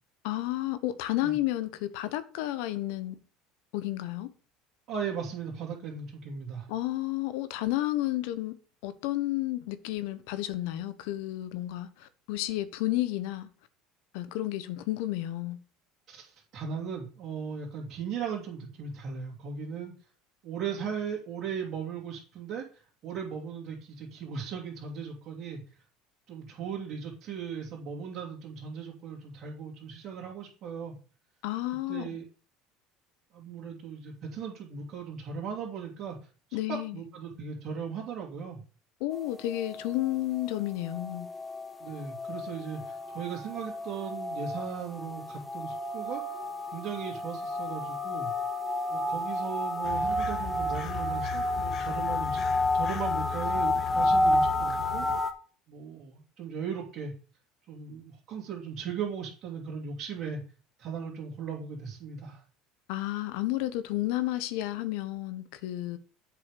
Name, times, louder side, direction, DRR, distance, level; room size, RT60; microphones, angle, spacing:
voice 1, 0.2-3.2 3.7-4.3 6.7-8.5 8.8-13.5 14.1-15.6 31.4-32.1 36.5-37.0 39.0-41.3 62.9-66.0, left 15 dB, 75° left, 0.9 m, -31 dB
voice 2, 4.9-6.7 16.1-19.9 20.4-25.6 26.3-31.0 31.9-32.2 33.3-36.2 36.7-38.6 41.8-46.2 46.7-48.3 48.9-52.4 52.7-55.1 55.7-57.1 57.7-60.4 60.8-62.4, right 6 dB, 50° right, 2.5 m, -37 dB
sound 1, 39.1-55.3, left 1 dB, 10° left, 1.6 m, -31 dB
sound 2, 49.8-55.2, left 11 dB, 45° left, 1.2 m, -38 dB
7.7 x 4.9 x 6.6 m
hypercardioid pair, 85°, 0 cm